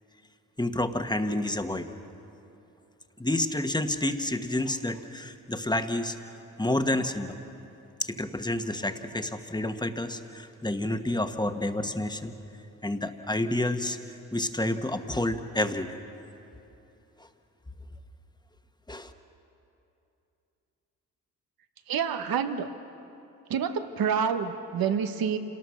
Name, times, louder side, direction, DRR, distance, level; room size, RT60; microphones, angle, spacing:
voice 1, 0.6-1.9 3.2-6.2 6.6-7.4 8.0-12.3 12.8-14.0 14.3-15.9 18.9-19.1, left 1 dB, 10° left, 7 dB, 1.4 m, -29 dB
voice 2, 21.9-22.7 23.5-25.4, right 7 dB, 70° right, 8 dB, 1.3 m, -28 dB
27.5 x 19.0 x 6.5 m, 2.8 s
supercardioid pair, 60°, 36 cm